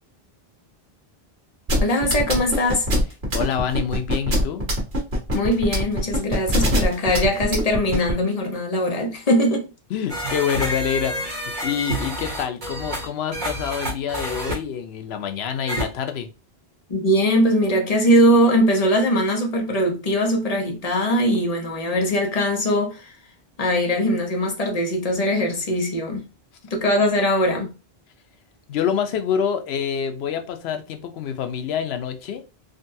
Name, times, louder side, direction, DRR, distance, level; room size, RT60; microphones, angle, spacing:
sound 1, 1.7-8.1, equal, 85° right, 1.5 m, -22 dB
voice 1, 1.8-2.9 5.3-9.7 16.9-23.1 23.6-26.2 26.7-27.7, equal, 40° left, 0.9 m, -21 dB
voice 2, 3.3-4.6 9.9-16.3 28.7-32.4, left 8 dB, 85° left, 0.8 m, -26 dB
sound 2, 10.1-14.6 15.7-15.8, equal, 50° right, 1.1 m, -28 dB
3.8 x 2.2 x 2.6 m
omnidirectional pair, 1.0 m